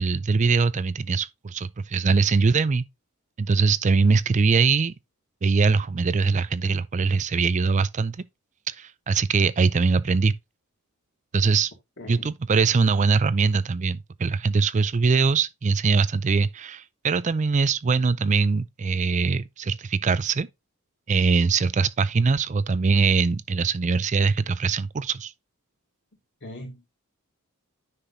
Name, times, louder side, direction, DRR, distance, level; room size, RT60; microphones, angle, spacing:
voice 1, 0.0-2.8 3.4-4.9 5.4-8.2 8.7-10.3 11.3-11.7 12.1-20.5 21.1-25.3, right 4 dB, 35° right, 0.4 m, -22 dB
voice 2, 12.0-12.3 26.4-26.9, left 1 dB, 55° left, 2.3 m, -40 dB
10.0 x 5.8 x 2.7 m
head